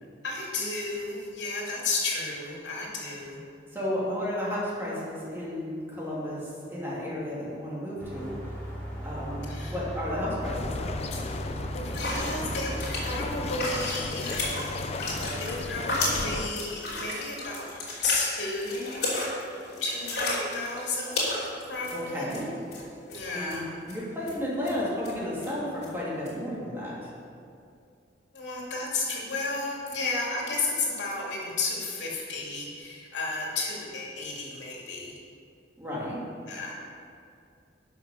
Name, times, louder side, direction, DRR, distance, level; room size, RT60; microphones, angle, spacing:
voice 1, 0.2-3.5 9.5-9.7 11.7-14.6 15.4-17.6 18.0-19.0 19.8-21.1 21.7-22.2 23.1-23.6 28.3-35.1 36.5-36.8, left 3 dB, 85° left, -3 dB, 2.5 m, -32 dB
voice 2, 3.7-6.4 6.7-8.3 9.0-10.9 21.9-22.5 23.3-27.1 35.8-36.2, left 1 dB, 15° right, -7 dB, 2.7 m, -33 dB
sound 1, 8.0-13.2, equal, 10° left, 2.9 m, -37 dB
sound 2, 10.4-16.5, left 2 dB, 35° left, 0.4 m, -35 dB
sound 3, 10.5-10.6 10.9-11.3 11.9-22.4 22.7-22.8 23.1-23.6 23.9-24.0 24.3-24.4 24.6-24.7 25.0-25.1 25.4-25.5 25.8-25.9 26.3-26.4, left 2 dB, 60° left, 3.1 m, -33 dB
12.0 x 5.9 x 6.4 m, 2.4 s
head